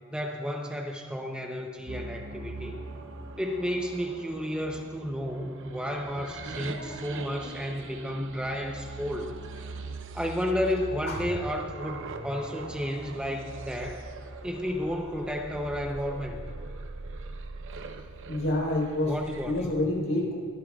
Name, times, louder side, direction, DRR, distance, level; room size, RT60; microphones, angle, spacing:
voice 1, 0.1-2.8 3.4-9.4 10.1-14.0 14.4-16.5 19.1-19.7, equal, 5° right, 2 dB, 0.7 m, -32 dB
sound 1, 1.9-19.6, right 3 dB, 60° right, 0.8 m, -41 dB
voice 2, 6.7-7.5 11.1-11.2 18.3-19.1 19.5-20.3, left 1 dB, 60° left, -1 dB, 3.8 m, -29 dB
23.0 x 14.5 x 2.4 m, 2.2 s
head